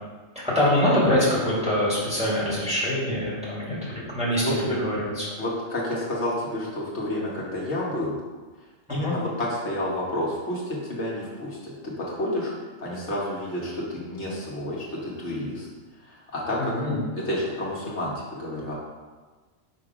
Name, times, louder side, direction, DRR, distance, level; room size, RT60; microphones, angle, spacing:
voice 1, 0.4-5.3 8.9-9.2 16.6-17.0, left 1 dB, 5° right, -8 dB, 2.3 m, -24 dB
voice 2, 4.4-4.9 5.4-8.2 8.9-12.5 12.8-15.7 16.0-16.7 17.1-18.7, left 1 dB, 60° left, -4 dB, 1.5 m, -30 dB
5.5 x 5.4 x 4.9 m, 1.3 s
omnidirectional pair, 1.3 m